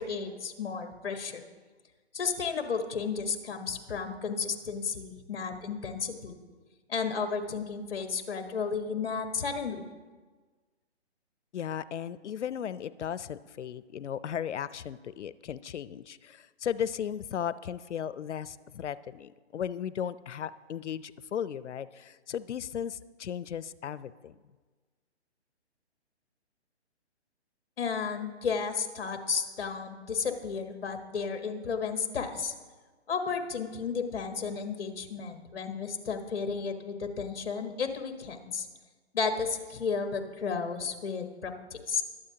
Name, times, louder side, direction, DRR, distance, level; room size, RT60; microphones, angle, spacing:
voice 1, 0.0-1.4 2.1-6.4 6.9-9.8 27.8-32.5 33.1-38.7 39.1-42.0, left 5 dB, 55° left, 7 dB, 1.2 m, -33 dB
voice 2, 11.5-24.3, left 9 dB, 85° left, 17 dB, 0.6 m, -36 dB
21.0 x 7.7 x 2.8 m, 1.4 s
hypercardioid pair, 170°, 34 cm